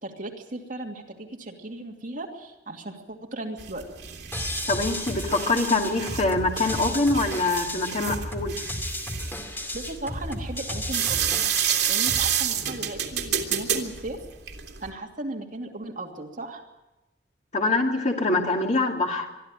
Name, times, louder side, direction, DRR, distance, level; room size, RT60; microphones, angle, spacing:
voice 1, 0.0-3.9 9.7-11.4 11.9-14.2 14.8-16.6, right 2 dB, 50° right, 1 dB, 2.6 m, -36 dB
sound 1, 3.6-14.9, right 9 dB, 80° right, 2.6 m, -29 dB
sound 2, 4.3-12.3, left 1 dB, 15° left, 2.3 m, -33 dB
voice 2, 4.7-8.5 17.5-19.3, left 2 dB, 45° left, 2 dB, 2.5 m, -24 dB
23.0 x 13.0 x 8.9 m, 1.0 s
head